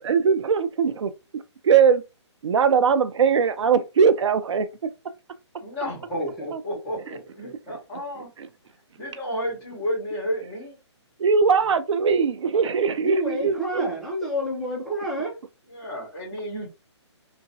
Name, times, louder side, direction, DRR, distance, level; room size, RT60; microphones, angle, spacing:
voice 1, 0.0-2.0 2.4-4.9 6.5-6.6 7.1-7.2 8.2-8.5 11.2-13.9, right 6 dB, 75° right, 0.5 m, -21 dB
voice 2, 5.6-8.3 9.0-10.8 15.7-16.7, equal, 25° left, 1.7 m, -31 dB
voice 3, 6.1-6.5 6.9-7.8 9.5-9.6 13.0-15.4, equal, ahead, 0.4 m, -30 dB
3.8 x 2.2 x 2.6 m
hypercardioid pair, 160°, 15 cm